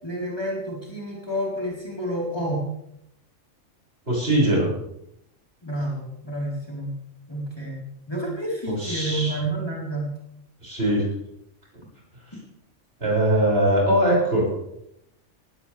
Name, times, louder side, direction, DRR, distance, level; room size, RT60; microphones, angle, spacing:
voice 1, 0.0-2.6 5.6-6.9 7.3-10.1, right 1 dB, 20° left, -4 dB, 4.3 m, -29 dB
voice 2, 4.1-4.8 8.7-9.3 10.6-11.1 13.0-14.5, right 1 dB, 50° right, -5 dB, 6.9 m, -21 dB
19.0 x 17.0 x 3.5 m, 0.79 s
omnidirectional pair, 1.3 m